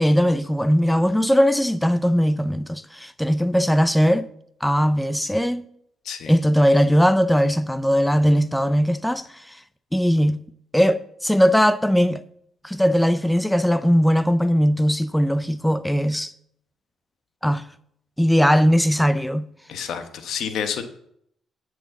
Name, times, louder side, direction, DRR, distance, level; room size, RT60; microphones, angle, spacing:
voice 1, 0.0-4.3 4.6-5.7 6.3-9.6 9.9-10.4 10.7-12.2 12.6-16.3 17.4-17.7 18.2-19.5, equal, 5° left, 0.4 m, -19 dB
voice 2, 19.7-20.8, left 7 dB, 75° left, 1.2 m, -29 dB
9.0 x 6.3 x 7.1 m
cardioid pair, 90°, 0 cm